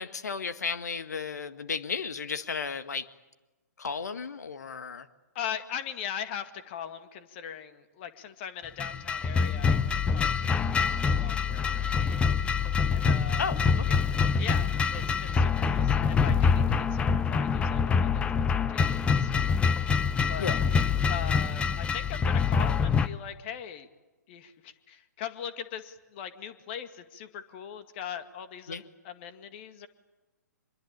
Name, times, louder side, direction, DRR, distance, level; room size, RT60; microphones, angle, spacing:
voice 1, 0.0-3.0 3.8-5.1 13.4-14.0 20.4-20.6 28.7-28.8, left 5 dB, 70° left, 10 dB, 1.8 m, -34 dB
voice 2, 5.3-12.2 12.9-13.5 14.4-19.5 20.3-20.6 21.1-23.9 24.3-29.9, left 9 dB, 40° left, 9 dB, 2.0 m, -40 dB
sound 1, 8.8-23.1, left 6 dB, 10° left, 0.8 m, -25 dB
25.0 x 22.5 x 8.8 m, 1.1 s
figure-of-eight pair, 125°, 9 cm